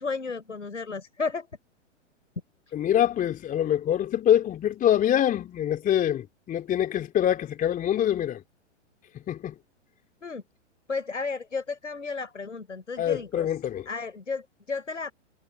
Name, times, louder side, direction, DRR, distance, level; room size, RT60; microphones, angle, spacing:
voice 1, 0.0-1.5 10.2-10.4 10.9-13.6 13.9-15.1, left 4 dB, 80° left, 6.2 m, -33 dB
voice 2, 2.7-8.4 9.3-9.5 13.0-13.9, left 10 dB, 20° left, 3.3 m, -25 dB
figure-of-eight pair, 110°, 36 cm